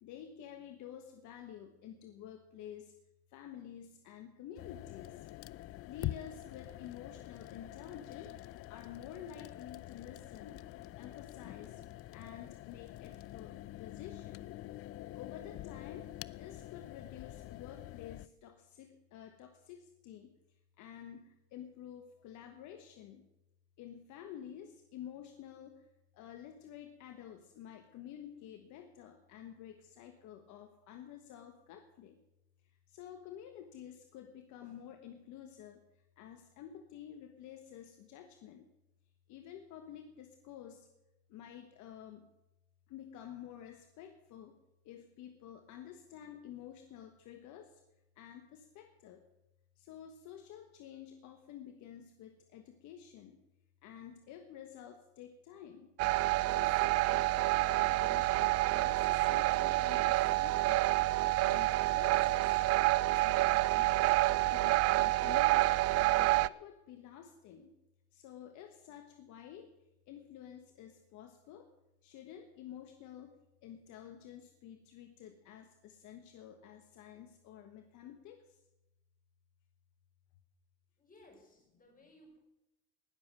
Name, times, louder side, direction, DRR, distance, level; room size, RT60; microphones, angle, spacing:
voice 1, 0.0-2.9 3.3-5.3 5.8-8.3 8.7-10.6 11.0-11.8 12.1-14.5 15.1-20.3 20.8-23.2 23.8-25.9 26.1-32.2 32.9-35.8 36.2-38.7 39.3-40.9 41.3-42.3 42.9-44.6 44.8-47.8 48.2-49.2 49.8-53.4 53.8-55.9 56.5-60.8 61.4-62.6 63.0-64.1 64.5-67.7 68.1-69.7 70.1-71.7 72.0-73.3 73.6-78.6, left 9 dB, 65° left, 6 dB, 1.4 m, -50 dB
sound 1, 4.6-18.3, left 15 dB, 45° left, 0.4 m, -46 dB
sound 2, 56.0-66.5, right 18 dB, 50° right, 0.4 m, -28 dB
voice 2, 81.0-82.4, left 1 dB, 25° left, 1 dB, 5.8 m, -60 dB
19.5 x 7.4 x 6.4 m, 0.93 s
supercardioid pair, 95°, 32 cm